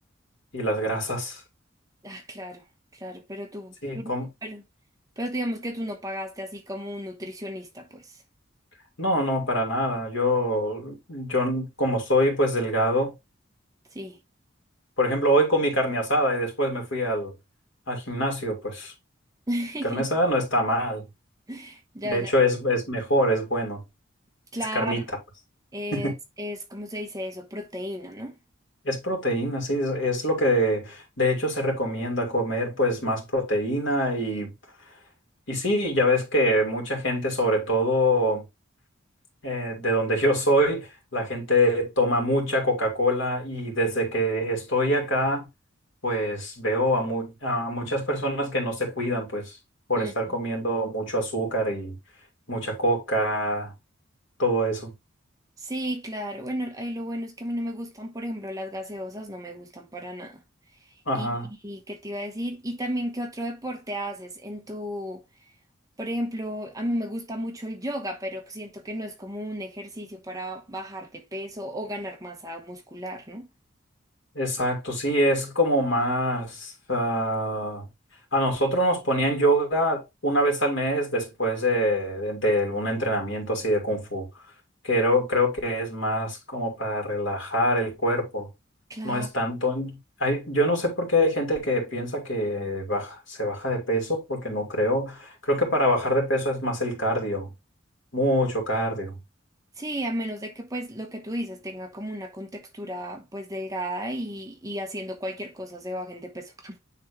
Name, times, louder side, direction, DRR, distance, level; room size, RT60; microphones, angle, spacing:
voice 1, 0.5-1.4 3.8-4.3 9.0-13.1 15.0-17.3 17.9-18.9 19.8-21.0 22.1-23.8 24.7-25.0 25.9-26.1 28.8-34.5 35.5-38.4 39.4-45.5 46.0-49.5 49.9-51.9 52.5-53.7 54.4-54.9 61.1-61.5 74.3-77.8 78.3-84.3 84.8-88.5 89.0-97.5 98.1-99.1, equal, 70° left, 2.7 m, -25 dB
voice 2, 2.0-2.6 2.9-4.1 4.4-4.6 5.2-8.2 13.9-14.2 19.5-20.1 21.5-22.3 24.5-25.1 25.7-28.3 50.0-50.1 55.6-60.4 61.1-65.2 66.0-73.5 88.9-89.3 99.8-106.8, equal, 15° right, 0.9 m, -34 dB
9.4 x 3.5 x 3.1 m
head